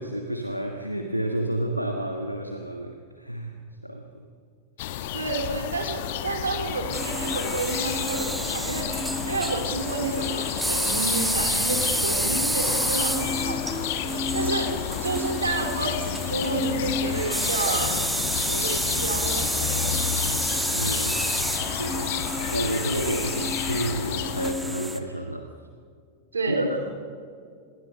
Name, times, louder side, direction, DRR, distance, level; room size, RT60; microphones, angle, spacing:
voice 1, 0.0-3.5 3.8-4.2 14.4-14.5 20.7-25.5 26.5-26.8, right 1 dB, 90° right, 4 dB, 1.4 m, -30 dB
sound 1, 4.8-24.5, left 10 dB, 50° left, 1.5 m, -31 dB
voice 2, 5.1-8.9 9.2-13.9 14.3-14.7 15.0-18.0 18.4-19.9 26.3-26.8, right 3 dB, 75° right, 4 dB, 3.7 m, -30 dB
sound 2, 6.9-25.0, right 1 dB, 5° right, 1.9 m, -29 dB
27.0 x 21.0 x 6.6 m, 2.2 s
figure-of-eight pair, 90°, 0 cm